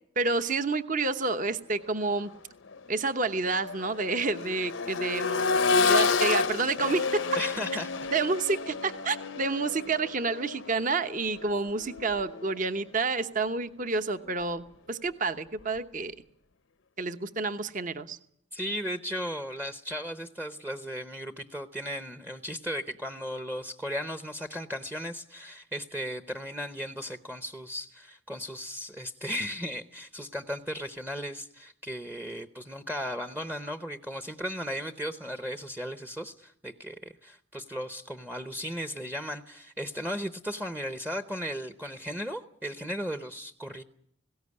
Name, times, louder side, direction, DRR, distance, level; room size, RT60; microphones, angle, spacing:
voice 1, 0.2-2.3 2.9-7.2 8.1-16.1 17.0-18.2, right 3 dB, 40° right, 10 dB, 1.0 m, -29 dB
Accelerating revving vroom, 2.1-2.2 2.7-12.6 14.3-14.4, left 4 dB, 65° left, 0.8 m, -30 dB
voice 2, 7.4-7.9 18.5-43.8, equal, 10° right, 9 dB, 0.8 m, -36 dB
20.0 x 17.5 x 9.7 m, 0.73 s
head